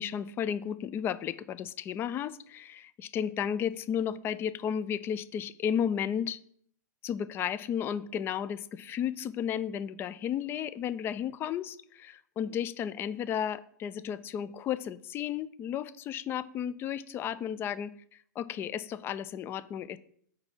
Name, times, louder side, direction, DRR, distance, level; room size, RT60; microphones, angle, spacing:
voice 1, 0.0-6.4 7.0-17.9 18.4-20.0, left 9 dB, 20° left, 17 dB, 0.4 m, -33 dB
8.8 x 3.4 x 5.8 m, 0.63 s
figure-of-eight pair, 105°, 10 cm